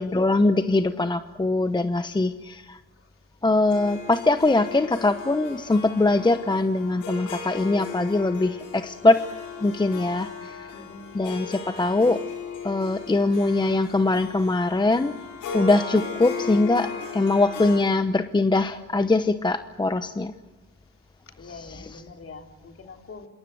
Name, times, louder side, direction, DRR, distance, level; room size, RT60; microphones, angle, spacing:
voice 1, 0.0-2.8 3.4-9.2 9.6-10.7 11.1-12.2 12.6-15.2 15.5-20.3 21.4-22.0, left 2 dB, 15° left, 10 dB, 1.0 m, -22 dB
Harp, 3.7-17.8, left 5 dB, 80° left, 5.9 m, -37 dB
voice 2, 10.7-11.2 21.4-23.3, left 4 dB, 45° left, 4 dB, 3.4 m, -43 dB
27.0 x 23.5 x 7.9 m, 1.2 s
cardioid pair, 90°, 30 cm